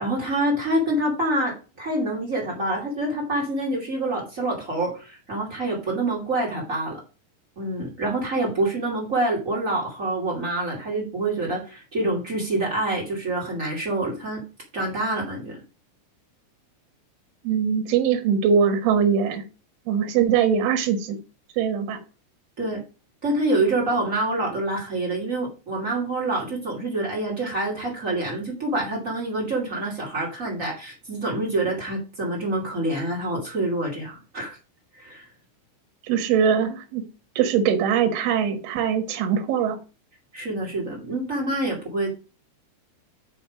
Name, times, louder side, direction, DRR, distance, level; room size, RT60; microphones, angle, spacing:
voice 1, 0.0-7.0 7.6-14.4 14.7-15.6 22.6-22.8 23.2-34.6 34.9-35.3 40.3-42.1, right 2 dB, 25° right, -3 dB, 1.8 m, -26 dB
voice 2, 17.4-19.5 19.9-21.2 21.6-22.0 36.0-37.0 37.4-39.8, right 7 dB, 65° right, 5 dB, 3.0 m, -22 dB
6.8 x 6.3 x 5.0 m, 0.33 s
omnidirectional pair, 5.7 m